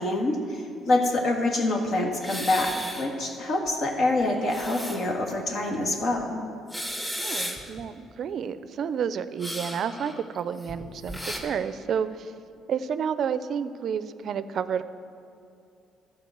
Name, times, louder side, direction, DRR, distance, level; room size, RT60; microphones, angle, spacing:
voice 1, 0.0-6.4, left 2 dB, 60° left, 2 dB, 1.6 m, -26 dB
sound 1, 2.2-3.3 3.7-3.8 4.3-5.3 5.7-5.8 6.6-7.8 9.4-11.4, equal, 10° left, 2.0 m, -34 dB
voice 2, 7.2-12.3 12.7-14.8, right 7 dB, 60° right, 14 dB, 0.4 m, -30 dB
12.5 x 4.8 x 7.9 m, 2.6 s
supercardioid pair, 70°, 0 cm